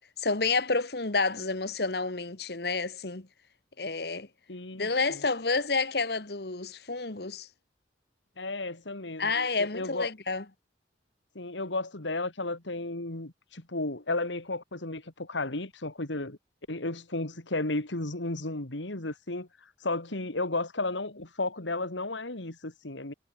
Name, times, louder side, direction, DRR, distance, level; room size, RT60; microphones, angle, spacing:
voice 1, 0.2-3.3 3.8-4.3 4.8-7.5 9.2-10.4, left 4 dB, 60° left, 1.5 m, -29 dB
voice 2, 4.5-5.2 8.4-9.3 9.6-10.1 11.3-16.4 16.7-19.5 19.8-23.1, left 2 dB, 85° left, 2.9 m, -33 dB
head